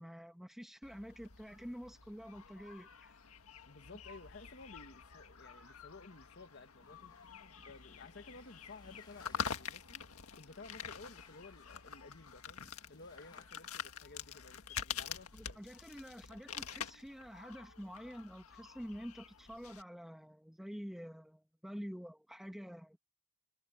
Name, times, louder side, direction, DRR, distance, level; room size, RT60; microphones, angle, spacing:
voice 1, 0.0-3.1 15.3-23.0, equal, ahead, 1.3 m, -48 dB
sound 1, 0.8-19.8, left 7 dB, 80° left, 1.7 m, -47 dB
voice 2, 3.7-10.1 10.3-12.6 12.9-15.6, left 3 dB, 50° left, 1.5 m, -55 dB
sound 2, 6.8-13.5, left 2 dB, 20° left, 2.1 m, -67 dB
head